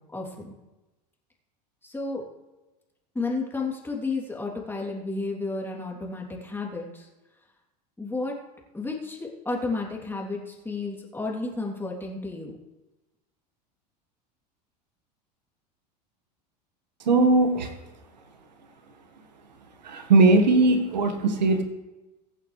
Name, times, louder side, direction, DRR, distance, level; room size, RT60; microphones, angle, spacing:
voice 1, 0.1-0.5 1.8-2.2 3.1-7.1 8.0-8.3 8.7-12.5, left 3 dB, 10° left, -1 dB, 3.2 m, -32 dB
voice 2, 17.0-17.7 19.8-21.6, right 3 dB, 85° right, 5 dB, 1.7 m, -19 dB
23.5 x 8.4 x 3.3 m, 1.1 s
hypercardioid pair, 85°, 21 cm